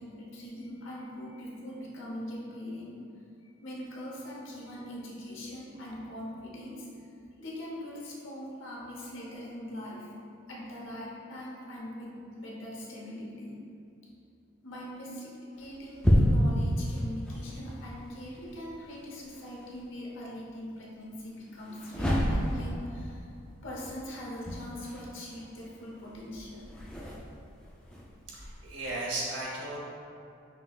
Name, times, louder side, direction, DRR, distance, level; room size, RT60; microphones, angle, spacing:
voice 1, 0.0-3.0 3.4-7.0 7.4-10.1 10.5-13.6 14.6-23.4 23.6-26.8, left 1 dB, 80° left, -5 dB, 0.9 m, -42 dB
sound 1, 15.5-19.8 21.5-29.0, equal, 5° left, 0.4 m, -31 dB
voice 2, 28.3-29.8, right 2 dB, 65° right, -5 dB, 1.0 m, -35 dB
5.8 x 2.9 x 2.4 m, 2.6 s
head